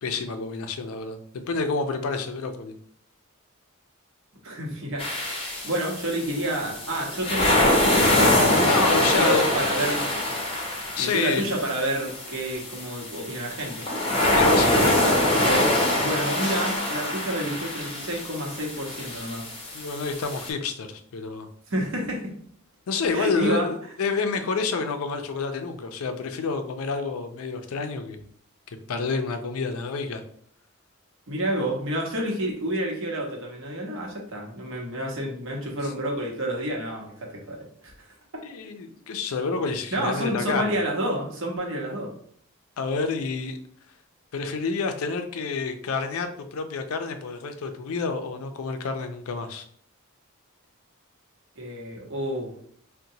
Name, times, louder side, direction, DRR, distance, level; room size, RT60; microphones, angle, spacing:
voice 1, 0.0-2.7 8.6-9.5 11.0-11.4 14.2-15.1 19.7-21.5 22.9-28.3 28.9-30.2 35.8-35.9 38.4-40.7 42.8-43.6 44.3-49.6, left 4 dB, 80° left, 7 dB, 0.4 m, -29 dB
voice 2, 4.4-8.6 9.0-10.4 11.0-13.8 14.7-14.9 15.4-15.7 16.0-19.5 21.7-22.4 23.1-23.7 31.3-38.1 39.9-42.1 51.6-52.5, right 1 dB, 65° right, 0 dB, 0.9 m, -29 dB
sound 1, 5.0-20.5, left 1 dB, 25° left, 0.6 m, -24 dB
3.9 x 2.1 x 2.7 m, 0.62 s
head